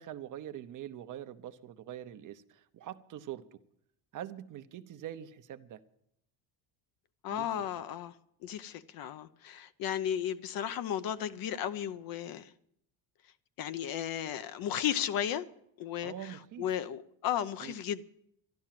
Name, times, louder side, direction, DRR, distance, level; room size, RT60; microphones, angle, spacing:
voice 1, 0.0-3.6 4.1-5.8 7.3-7.5 16.0-16.7 17.6-17.7, right 11 dB, 45° right, 0.8 m, -44 dB
voice 2, 7.2-8.1 8.4-12.5 13.6-15.5 15.8-18.0, left 10 dB, 55° left, 0.8 m, -34 dB
12.0 x 12.0 x 7.5 m
cardioid pair, 120°, 43 cm